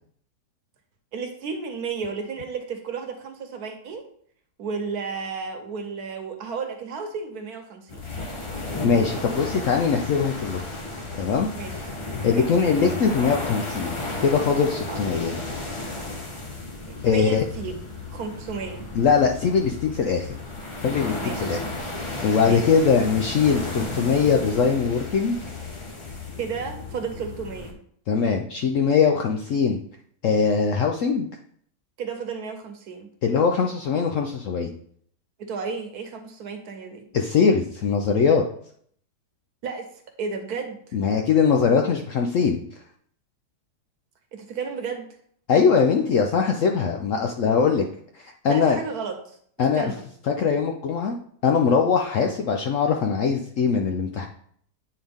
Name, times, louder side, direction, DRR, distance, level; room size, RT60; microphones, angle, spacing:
voice 1, 1.1-4.0 4.6-8.0 11.5-11.7 12.3-12.5 14.9-15.0 17.0-17.8 18.1-18.8 21.2-21.5 22.4-22.7 26.4-27.8 32.0-33.1 35.4-37.0 39.6-39.9 40.2-41.0 44.3-45.1 48.5-49.4 49.7-50.0, right 5 dB, 65° right, 4 dB, 1.3 m, -33 dB
sound 1, 7.9-27.7, left 2 dB, 45° left, 0.4 m, -33 dB
voice 2, 8.8-10.6 11.2-11.5 12.2-13.9 14.2-15.3 17.0-17.4 18.9-20.4 20.8-21.6 22.2-25.4 28.1-29.8 30.2-31.3 33.2-34.7 37.1-38.4 40.9-42.6 45.5-47.9 48.1-48.8 49.6-49.9 50.3-51.2 51.4-54.3, left 6 dB, 70° left, 2 dB, 0.7 m, -21 dB
8.6 x 3.8 x 3.5 m, 0.62 s
omnidirectional pair, 1.8 m